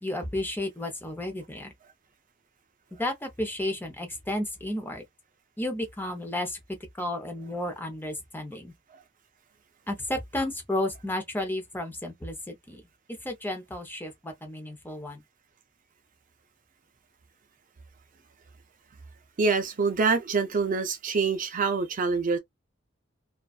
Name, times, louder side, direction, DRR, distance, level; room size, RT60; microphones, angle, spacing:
voice 1, 0.0-1.7 3.0-5.0 5.6-6.6 7.0-8.7 9.9-12.8 13.2-15.2, left 1 dB, 10° left, 0.6 m, -32 dB
voice 2, 19.4-22.4, right 4 dB, 45° right, 0.5 m, -25 dB
2.4 x 2.3 x 2.3 m
head